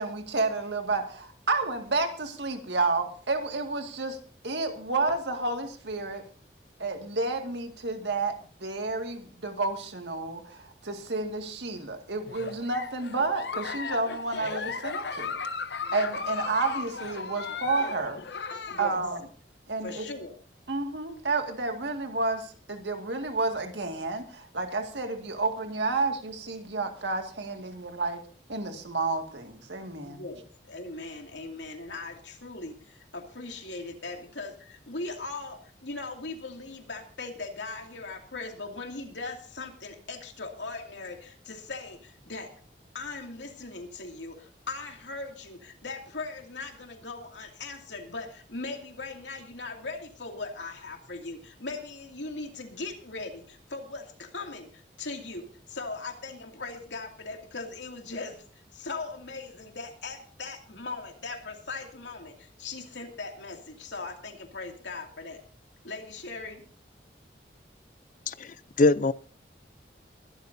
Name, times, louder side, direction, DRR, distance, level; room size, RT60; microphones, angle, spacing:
voice 1, 0.0-4.2 4.4-6.2 6.8-15.4 15.9-18.2 18.8-19.2 19.7-20.0 20.7-28.2 28.5-30.2, right 3 dB, 80° right, 5 dB, 2.1 m, -30 dB
Giggle, 12.3-19.0, left 5 dB, 70° left, 0.9 m, -36 dB
voice 2, 18.7-19.0 19.8-20.4 30.0-42.5 42.9-65.4 65.8-66.6, left 3 dB, 90° left, 3 dB, 2.5 m, -39 dB
voice 3, 68.3-69.1, left 2 dB, 45° left, 17 dB, 0.5 m, -23 dB
22.0 x 12.5 x 2.7 m, 0.43 s
head